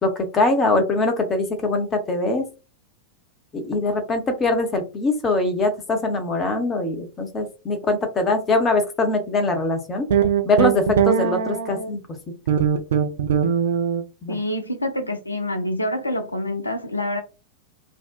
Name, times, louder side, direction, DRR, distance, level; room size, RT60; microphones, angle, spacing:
voice 1, 0.0-2.4 3.5-10.1 10.5-12.0 14.2-14.4, left 2 dB, 20° left, 0.7 m, -22 dB
sound 1, 10.1-11.9 12.5-14.0, right 8 dB, 60° right, 0.4 m, -20 dB
voice 2, 14.3-17.2, left 1 dB, 85° left, 0.4 m, -26 dB
2.6 x 2.1 x 2.3 m
figure-of-eight pair, 90°, 0 cm